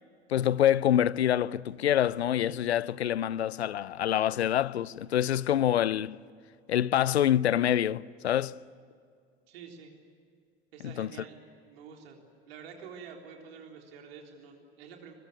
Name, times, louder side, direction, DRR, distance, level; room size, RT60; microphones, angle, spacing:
voice 1, 0.3-6.2 6.7-8.6 10.8-11.1, left 11 dB, 80° left, 0.6 m, -26 dB
voice 2, 9.5-9.9 10.7-12.2 12.5-15.1, right 6 dB, 70° right, 3.9 m, -48 dB
23.0 x 22.0 x 9.3 m
figure-of-eight pair, 65°, 32 cm